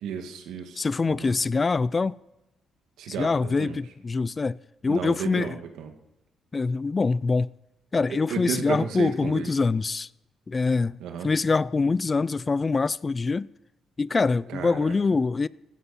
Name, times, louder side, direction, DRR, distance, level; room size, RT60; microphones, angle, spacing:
voice 1, 0.0-1.3 3.0-3.8 4.9-5.9 8.3-9.5 11.0-11.3 14.5-14.9, right 7 dB, 85° right, 1.8 m, -33 dB
voice 2, 0.8-2.1 3.2-5.6 6.5-7.5 7.9-10.1 10.5-13.5 14.0-15.5, left 4 dB, 30° left, 0.4 m, -24 dB
16.0 x 13.0 x 4.2 m
cardioid pair, 90°, 0 cm